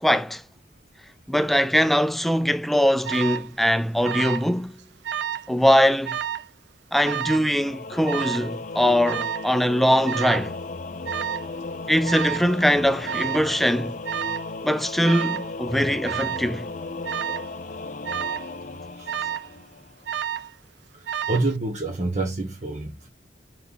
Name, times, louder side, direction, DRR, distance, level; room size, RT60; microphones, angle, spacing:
voice 1, 0.0-0.4 1.3-4.8 5.5-6.2 6.9-10.5 11.9-14.0 14.6-16.7, equal, ahead, 0.4 m, -22 dB
Alarm, 3.0-3.5 4.0-4.5 4.8-5.5 6.0-6.5 7.0-7.5 8.1-8.5 9.1-9.5 10.1-10.5 11.1-11.5 12.1-12.5 13.1-13.5 14.0-14.5 15.0-15.5 16.0-16.5 17.0-17.5 18.0-18.5 19.1-19.5 20.1-20.5 21.1-21.5, right 9 dB, 70° right, 0.4 m, -30 dB
Singing / Musical instrument, 7.6-20.1, left 3 dB, 45° left, 0.6 m, -35 dB
voice 2, 20.9-23.1, right 2 dB, 40° right, 1.4 m, -27 dB
5.5 x 4.5 x 5.5 m
head